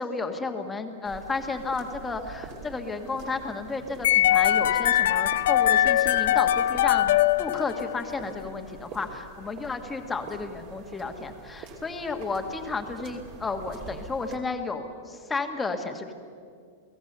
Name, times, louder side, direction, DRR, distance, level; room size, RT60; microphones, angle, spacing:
voice 1, 0.0-16.1, left 3 dB, 10° left, 5 dB, 1.5 m, -32 dB
sound 1, 1.0-14.4, right 4 dB, 35° right, 2.9 m, -46 dB
sound 2, 4.0-8.2, left 12 dB, 65° left, 0.6 m, -22 dB
30.0 x 18.0 x 6.8 m, 2.2 s
supercardioid pair, 170°, 0 cm